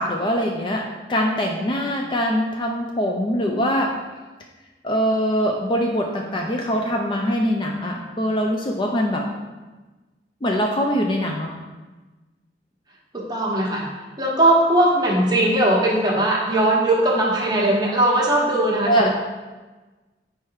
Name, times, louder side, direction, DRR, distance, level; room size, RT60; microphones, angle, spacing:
voice 1, 0.0-3.9 4.8-9.2 10.4-11.6 18.9-19.1, equal, 25° left, 1 dB, 0.4 m, -23 dB
voice 2, 13.1-13.9 14.2-19.1, right 1 dB, 25° right, -3 dB, 1.1 m, -19 dB
4.7 x 4.6 x 4.6 m, 1.2 s
head